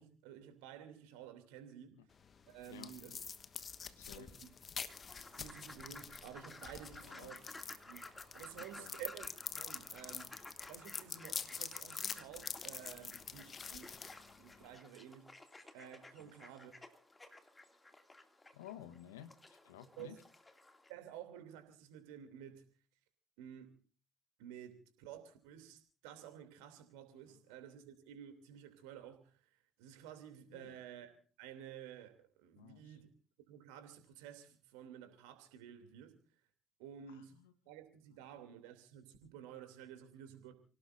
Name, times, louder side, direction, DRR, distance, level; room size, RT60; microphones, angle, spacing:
voice 1, 0.0-2.0 2.5-3.2 4.2-4.5 5.3-7.4 7.9-10.3 10.7-13.9 14.4-15.3 15.7-16.7 20.0-20.2 20.9-22.7 23.4-23.7 24.4-29.3 29.8-33.1 33.5-36.1 36.8-37.3 37.7-40.5, right 10 dB, 70° right, 2.9 m, -52 dB
sound 1, 2.1-14.8, left 6 dB, 40° left, 1.2 m, -46 dB
voice 2, 3.9-4.4 7.1-7.4 8.6-9.0 16.2-16.3 18.5-20.2 27.3-27.4 30.5-30.8 32.6-33.0 37.1-37.5 38.2-38.3, left 11 dB, 80° left, 1.2 m, -54 dB
sound 2, 4.9-20.9, left 2 dB, 20° left, 2.6 m, -56 dB
30.0 x 18.0 x 2.7 m
hypercardioid pair, 55°, 0 cm